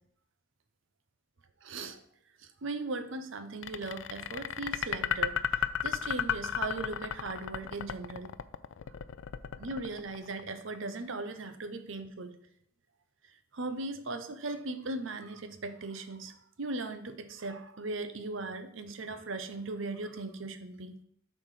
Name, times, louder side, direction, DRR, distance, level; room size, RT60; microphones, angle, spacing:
voice 1, 1.6-2.0 2.4-8.3 9.6-12.4 13.5-21.0, right 3 dB, 70° right, 8 dB, 0.8 m, -38 dB
sound 1, 3.6-10.8, left 9 dB, 65° left, 0.4 m, -33 dB
7.4 x 4.3 x 4.9 m, 0.65 s
head